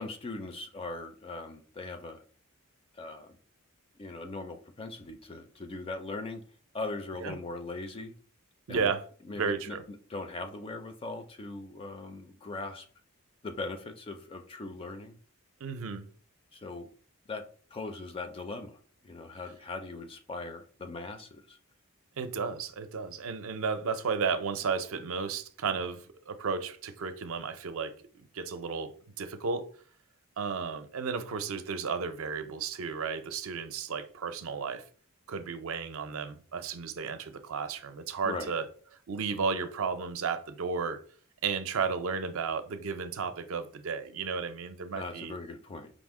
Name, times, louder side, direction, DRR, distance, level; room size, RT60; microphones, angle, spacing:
voice 1, 0.0-2.2 2.9-3.4 4.0-6.4 6.7-8.2 8.7-8.9 9.3-9.8 10.1-12.9 13.4-15.2 16.5-16.9 17.3-17.4 17.7-18.8 19.0-21.6 38.2-38.5 45.0-45.9, left 3 dB, 25° left, 0.4 m, -40 dB
voice 2, 8.7-9.0 9.3-9.8 15.6-16.1 22.2-28.9 29.2-29.7 30.4-34.8 35.3-38.7 39.1-41.0 41.4-45.3, right 5 dB, 65° right, 0.5 m, -33 dB
5.0 x 2.1 x 3.5 m
head